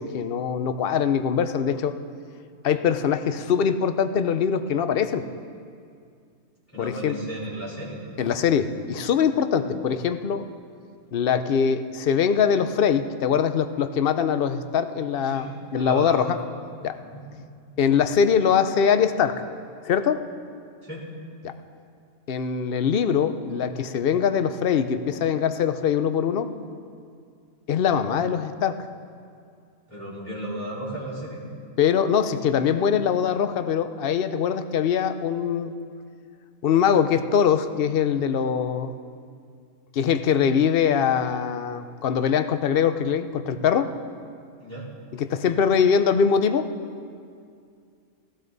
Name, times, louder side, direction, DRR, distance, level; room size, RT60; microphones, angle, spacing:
voice 1, 0.0-1.9 2.6-5.3 6.8-7.1 8.2-10.4 11.1-16.4 16.8-17.0 17.8-19.4 19.8-20.2 21.4-21.5 22.3-26.5 27.7-28.8 31.8-35.7 36.6-38.9 39.9-43.9 45.1-46.7, left 7 dB, 50° left, 10 dB, 0.7 m, -22 dB
voice 2, 6.7-8.0 9.5-9.7 15.2-16.3 17.0-17.2 20.8-21.0 29.9-31.4 44.6-44.9, right 1 dB, 10° left, -8 dB, 4.3 m, -34 dB
16.5 x 16.5 x 4.0 m, 2.3 s
omnidirectional pair, 1.5 m